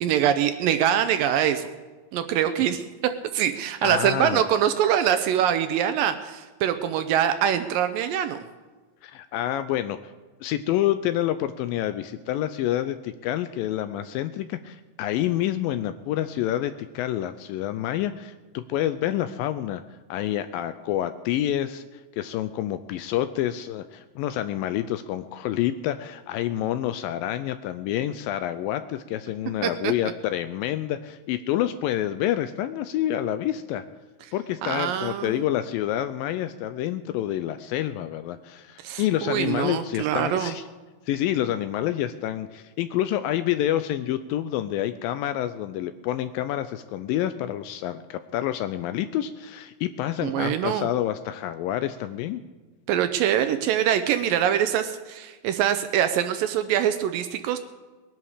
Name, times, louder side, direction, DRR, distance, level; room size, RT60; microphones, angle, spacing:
voice 1, 0.0-1.7 2.1-8.4 29.6-29.9 34.6-35.5 38.8-40.5 50.2-50.9 52.9-57.6, right 10 dB, 80° right, 9 dB, 2.2 m, -24 dB
voice 2, 3.8-4.4 9.0-10.0 10.4-19.8 20.1-33.8 34.3-40.6 41.1-52.4, left 12 dB, 80° left, 11 dB, 2.1 m, -28 dB
20.5 x 11.0 x 4.9 m, 1.3 s
omnidirectional pair, 4.4 m